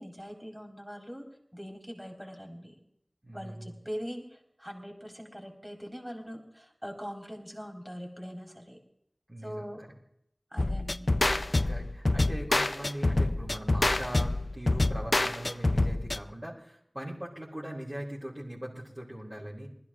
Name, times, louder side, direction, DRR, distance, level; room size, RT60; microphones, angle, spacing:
voice 1, 0.0-2.8 3.3-8.8 9.4-9.8 10.5-11.2, equal, 5° right, 1 dB, 3.9 m, -42 dB
voice 2, 3.2-3.7 9.3-9.9 11.6-19.7, right 1 dB, 25° right, -8 dB, 4.0 m, -40 dB
sound 1, 10.6-16.2, left 2 dB, 60° left, 0.5 m, -27 dB
20.5 x 13.5 x 3.7 m, 0.74 s
wide cardioid pair, 40°, 0 cm